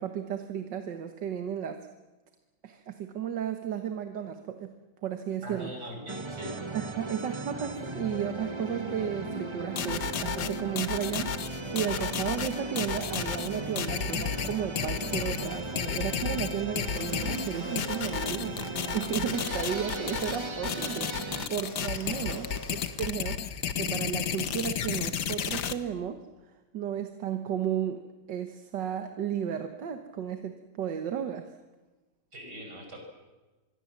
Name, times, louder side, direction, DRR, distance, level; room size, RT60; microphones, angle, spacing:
voice 1, 0.0-1.8 2.6-4.7 5.0-5.7 6.7-22.5 23.0-26.2 26.7-31.5, right 8 dB, 85° right, 7 dB, 1.9 m, -34 dB
voice 2, 5.4-6.5 22.0-22.4 32.3-33.0, equal, 70° right, 3 dB, 6.4 m, -41 dB
sound 1, 6.1-21.5, right 2 dB, 20° right, 1.2 m, -37 dB
sound 2, 9.8-25.7, left 8 dB, 70° left, 1.7 m, -32 dB
sound 3, 16.9-18.2 19.3-20.5 21.6-22.9, left 1 dB, 55° left, 6.4 m, -46 dB
25.5 x 22.5 x 7.4 m, 1.2 s
omnidirectional pair, 1.9 m